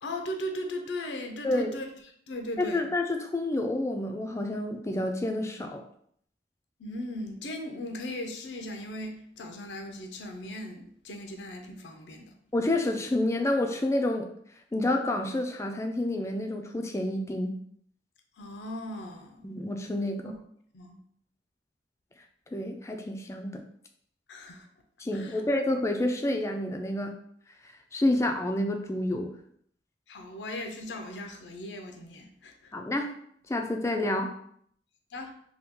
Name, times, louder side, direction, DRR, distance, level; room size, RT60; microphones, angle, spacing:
voice 1, 0.0-1.8 2.3-2.8 6.8-12.4 18.4-19.4 20.2-20.4 20.7-21.0 24.3-24.7 25.1-25.4 30.1-32.7 35.1-35.3, left 1 dB, 90° left, 0.5 m, -38 dB
voice 2, 2.6-5.8 12.5-14.3 14.7-17.5 19.4-20.3 22.5-23.6 25.0-27.2 27.9-29.3 32.7-33.1 33.5-34.3, left 1 dB, 15° left, 0.3 m, -29 dB
2.9 x 2.3 x 3.5 m
head